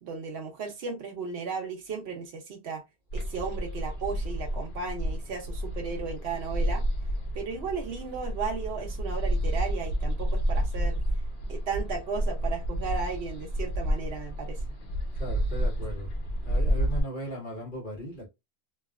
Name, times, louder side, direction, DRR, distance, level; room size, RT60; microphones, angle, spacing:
voice 1, 0.0-2.8 3.1-6.8 7.3-11.0 11.5-14.6, right 5 dB, 75° right, 1.0 m, -35 dB
sound 1, 3.1-17.0, equal, 80° left, 1.1 m, -30 dB
voice 2, 15.2-16.1 16.4-18.3, equal, 55° left, 1.4 m, -37 dB
3.0 x 2.5 x 2.4 m
omnidirectional pair, 1.0 m